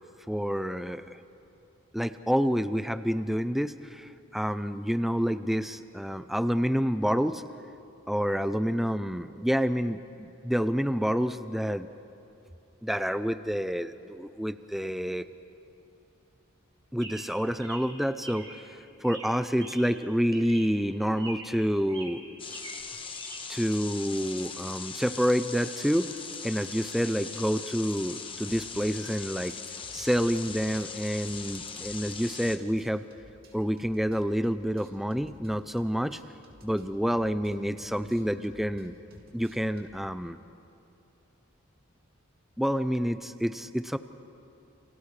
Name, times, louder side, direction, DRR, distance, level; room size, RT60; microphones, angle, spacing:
voice 1, 0.3-1.2 1.9-7.4 8.1-11.9 12.8-15.3 16.9-22.2 23.5-26.1 26.4-29.6 29.9-33.0 33.5-36.2 36.6-38.9 39.3-40.4 42.6-44.0, equal, ahead, 11 dB, 0.4 m, -28 dB
Chirp tweet, 17.0-18.6 19.0-20.0 20.3-20.8 21.2-21.6 21.9-23.4, right 2 dB, 25° right, 2.1 m, -44 dB
sound 1, 22.4-32.6, left 5 dB, 25° left, 1.1 m, -40 dB
sound 2, 28.1-28.8 29.1-32.2 32.4-35.5 35.8-40.1, right 1 dB, 45° right, 2.5 m, -54 dB
30.0 x 29.5 x 3.3 m, 2.7 s
head